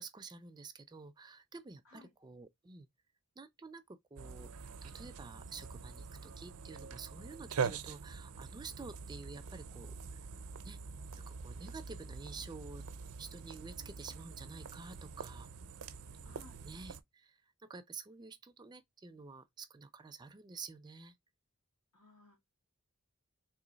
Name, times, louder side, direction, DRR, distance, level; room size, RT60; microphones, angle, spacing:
voice 1, 0.0-2.9 3.4-4.5 4.8-10.2 10.6-10.8 11.2-12.8 13.2-15.5 16.6-21.1, right 4 dB, 20° right, 0.4 m, -50 dB
sound 1, 4.2-17.0, right 5 dB, 80° right, 0.5 m, -44 dB
voice 2, 16.2-16.6 21.9-22.4, left 3 dB, 75° left, 1.5 m, -59 dB
3.4 x 3.1 x 3.8 m
head